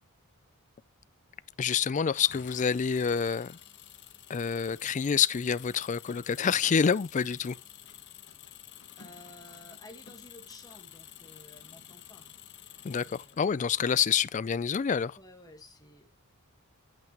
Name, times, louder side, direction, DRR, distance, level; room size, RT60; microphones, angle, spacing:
voice 1, 1.6-3.6 4.3-7.6 12.8-15.2, left 7 dB, 35° left, 0.3 m, -27 dB
Engine, 2.1-13.7, left 10 dB, 50° left, 1.1 m, -51 dB
voice 2, 9.0-12.2 12.8-13.6 15.2-16.1, left 1 dB, 15° left, 1.4 m, -53 dB
8.9 x 7.9 x 2.9 m
head